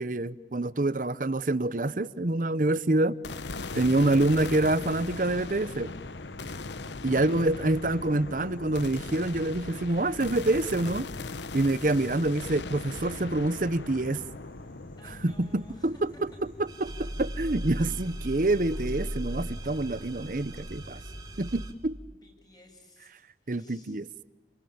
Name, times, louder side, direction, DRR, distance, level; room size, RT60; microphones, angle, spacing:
voice 1, 0.0-3.2 3.7-5.9 7.0-11.1 11.5-14.2 15.2-16.0 16.8-21.0 21.4-22.0 23.5-24.1, right 2 dB, 50° right, 16 dB, 0.8 m, -26 dB
sound 1, 3.2-17.5, left 3 dB, 85° left, 1.0 m, -39 dB
sound 2, 3.9-21.6, equal, 50° left, 7.8 m, -51 dB
voice 2, 15.0-16.2 17.8-18.1 22.1-23.1 23.4-24.0, left 1 dB, 25° left, 2 dB, 6.9 m, -55 dB
sound 3, 16.7-21.7, right 1 dB, 20° right, 1.9 m, -37 dB
29.5 x 22.0 x 8.8 m, 1.2 s
head